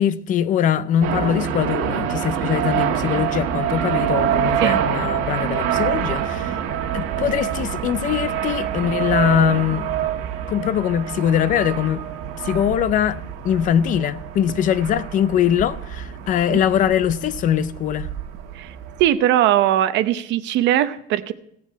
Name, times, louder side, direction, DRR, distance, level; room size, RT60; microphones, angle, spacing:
voice 1, 0.0-6.6 6.9-9.9 10.5-12.0 12.4-18.1, left 9 dB, 40° left, 0.5 m, -22 dB
sound 1, 1.0-19.1, right 9 dB, 90° right, 1.3 m, -26 dB
voice 2, 18.5-21.3, right 12 dB, 60° right, 0.7 m, -20 dB
17.0 x 7.1 x 4.5 m
cardioid pair, 165°, 21 cm